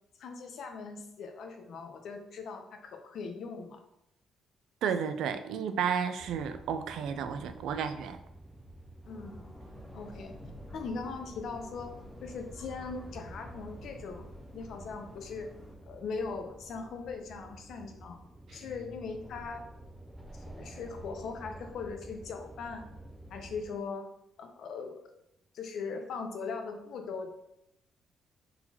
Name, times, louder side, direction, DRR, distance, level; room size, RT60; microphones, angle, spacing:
voice 1, 0.2-3.8 9.1-9.5 9.9-10.4 10.7-11.9 12.2-14.3 14.5-15.5 15.9-18.2 18.5-19.7 20.3-22.9 23.3-24.1 24.4-25.1 25.5-27.3, left 4 dB, 70° left, 5 dB, 0.7 m, -40 dB
voice 2, 4.8-8.2, right 7 dB, 80° right, 9 dB, 0.4 m, -32 dB
sound 1, 6.2-23.7, right 1 dB, 10° right, 0.5 m, -49 dB
sound 2, 9.0-15.7, left 1 dB, 10° left, 1.6 m, -52 dB
sound 3, 18.5-19.8, left 3 dB, 65° right, 1.3 m, -54 dB
4.2 x 4.0 x 2.8 m, 0.82 s
cardioid pair, 90°, 0 cm